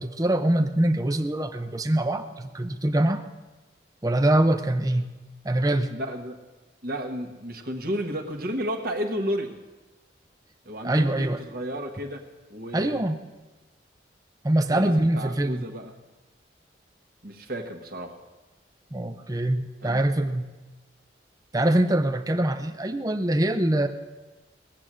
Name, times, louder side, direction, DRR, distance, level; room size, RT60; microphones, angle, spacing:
voice 1, 0.0-3.2 4.0-5.1 5.4-6.0 10.8-11.4 12.7-13.2 14.4-15.7 18.9-20.5 21.5-23.9, right 1 dB, 20° right, 6 dB, 0.6 m, -24 dB
voice 2, 5.9-6.4 6.8-9.6 10.6-12.2 12.5-13.0 14.7-15.9 17.2-18.2 19.8-20.0, equal, 50° right, 3 dB, 1.4 m, -32 dB
19.0 x 8.2 x 7.5 m, 1.2 s
head